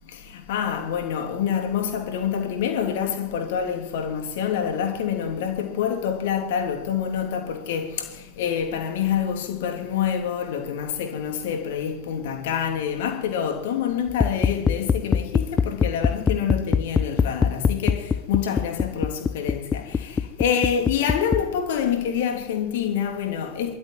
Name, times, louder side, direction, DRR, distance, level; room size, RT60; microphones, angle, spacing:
voice 1, 0.1-23.7, left 8 dB, 55° left, 3.1 m, -27 dB
sound 1, 14.1-21.4, left 6 dB, 20° left, 0.9 m, -22 dB
23.0 x 13.0 x 9.3 m
figure-of-eight pair, 90°, 0 cm